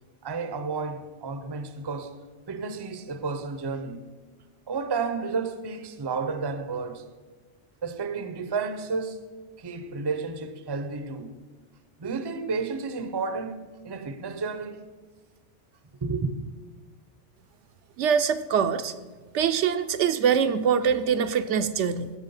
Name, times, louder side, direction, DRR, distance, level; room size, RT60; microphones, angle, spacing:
voice 1, 0.2-2.2 2.5-4.0 4.7-7.0 7.8-9.2 9.6-11.3 12.0-14.8 16.0-16.3, right 4 dB, 30° right, 0.5 m, -31 dB
voice 2, 18.0-18.9 19.3-22.1, right 7 dB, 75° right, 0.9 m, -24 dB
15.5 x 6.1 x 5.5 m
omnidirectional pair, 1.3 m